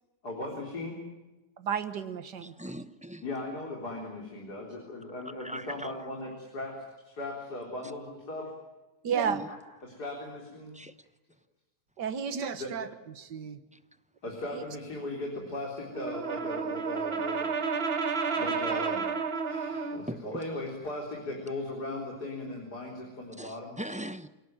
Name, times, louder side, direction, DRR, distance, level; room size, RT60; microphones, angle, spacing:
voice 1, 0.2-1.0 3.2-6.8 7.0-8.5 9.8-10.8 12.6-12.7 14.2-17.5 18.0-19.0 19.5-23.8, left 1 dB, 70° left, 0 dB, 4.5 m, -38 dB
voice 2, 1.6-2.5 9.0-9.4 12.0-12.9 13.2-13.6 14.5-14.6, right 7 dB, 85° right, 11 dB, 2.0 m, -32 dB
voice 3, 2.4-3.2 5.4-5.9 9.2-9.5 10.7-10.9 20.1-20.4 23.4-24.3, right 1 dB, 5° right, 11 dB, 0.7 m, -40 dB
Brass instrument, 15.9-20.1, right 5 dB, 40° right, 1.4 m, -31 dB
28.0 x 18.0 x 9.0 m, 1.1 s
omnidirectional pair, 1.8 m